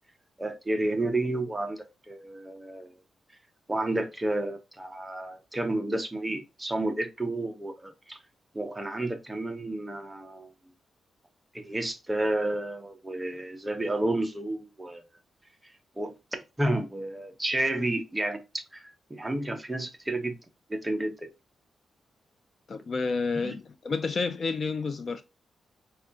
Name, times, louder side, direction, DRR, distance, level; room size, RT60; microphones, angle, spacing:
voice 1, 0.4-2.9 3.7-8.2 8.5-10.5 11.5-15.0 16.0-16.1 16.6-18.4 18.7-18.8 19.1-20.4 20.7-21.3 23.3-23.6, right 1 dB, 10° right, 0.6 m, -31 dB
voice 2, 22.7-25.2, left 4 dB, 40° left, 0.3 m, -30 dB
4.7 x 2.3 x 2.4 m
wide cardioid pair, 170°, 0 cm